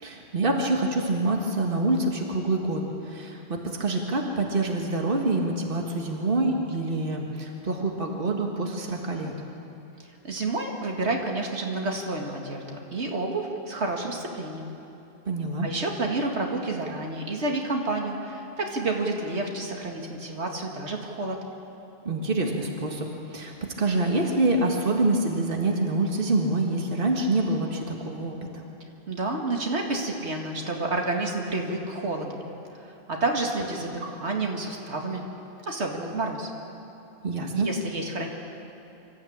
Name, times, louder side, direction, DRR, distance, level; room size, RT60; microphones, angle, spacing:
voice 1, 0.0-9.3 15.3-15.7 22.0-28.6 37.2-37.7, right 2 dB, 55° right, 1 dB, 1.9 m, -26 dB
voice 2, 10.2-14.7 15.6-21.4 29.1-32.4 33.1-35.2 35.6-36.5 37.5-38.3, right 2 dB, 80° right, 1 dB, 2.2 m, -29 dB
25.5 x 13.5 x 8.7 m, 2.9 s
omnidirectional pair, 1.1 m